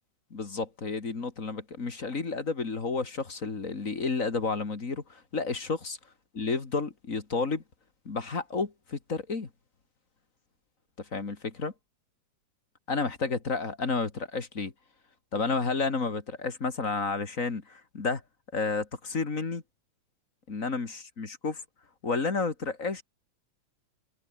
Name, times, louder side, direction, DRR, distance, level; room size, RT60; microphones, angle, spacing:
voice 1, 0.3-6.0 6.4-7.6 8.1-9.5 11.1-11.7 12.9-14.7 15.3-18.2 18.5-19.6 20.5-21.6 22.0-23.0, left 4 dB, 30° left, 2.2 m, -31 dB
omnidirectional pair, 3.6 m